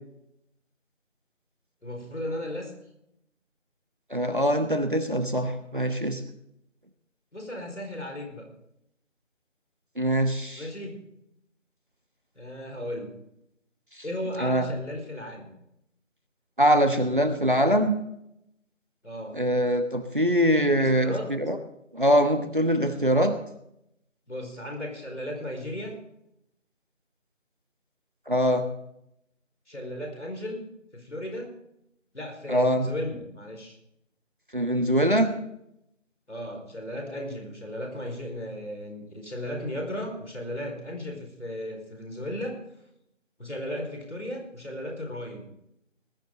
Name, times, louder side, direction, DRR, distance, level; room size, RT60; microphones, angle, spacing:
voice 1, 1.8-2.7 7.3-8.5 10.6-11.0 12.3-13.1 14.0-15.5 19.0-19.4 20.5-21.3 24.3-26.0 29.7-30.6 30.9-31.5 32.1-33.8 36.3-42.6 43.4-45.5, left 1 dB, 65° left, 3 dB, 4.7 m, -35 dB
voice 2, 4.1-6.2 10.0-10.6 14.4-14.7 16.6-18.0 19.3-21.6 21.9-23.4 28.3-28.7 32.5-32.9 34.5-35.3, equal, 40° right, 7 dB, 1.2 m, -23 dB
19.5 x 10.5 x 3.8 m, 0.78 s
figure-of-eight pair, 175°, 38 cm